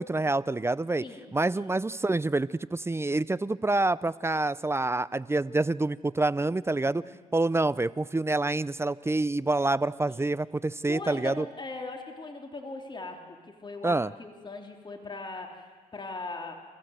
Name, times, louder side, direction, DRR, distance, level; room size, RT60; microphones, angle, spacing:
voice 1, 0.0-1.0 1.3-7.0 7.3-11.4 13.8-14.1, right 2 dB, 15° right, 18 dB, 0.6 m, -27 dB
voice 2, 1.0-1.8 6.8-7.2 10.1-10.3 10.9-16.5, left 3 dB, 30° left, 2 dB, 3.1 m, -40 dB
28.0 x 15.5 x 7.9 m, 1.5 s
supercardioid pair, 65°, 15 cm